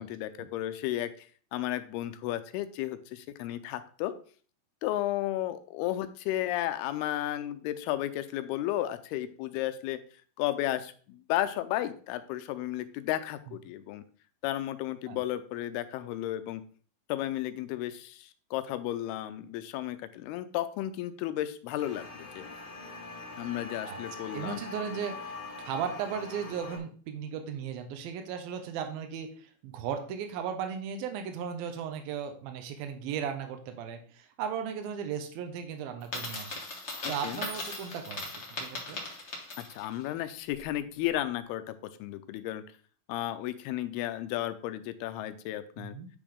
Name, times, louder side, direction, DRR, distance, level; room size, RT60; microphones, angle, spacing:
voice 1, 0.0-4.1 4.8-10.0 10.4-14.0 14.4-16.6 17.1-22.4 23.4-24.6 37.2-37.4 39.6-42.6 43.1-45.9, left 13 dB, 90° left, 11 dB, 2.6 m, -33 dB
sound 1, 21.8-26.8, left 3 dB, 45° left, 2.2 m, -43 dB
voice 2, 24.3-25.3 25.7-36.6 37.1-38.3 38.6-39.0 45.8-46.1, right 7 dB, 75° right, 6 dB, 2.7 m, -36 dB
Coin (dropping), 36.0-39.9, left 2 dB, 65° left, 0.6 m, -38 dB
9.4 x 5.1 x 3.6 m, 0.43 s
omnidirectional pair, 4.4 m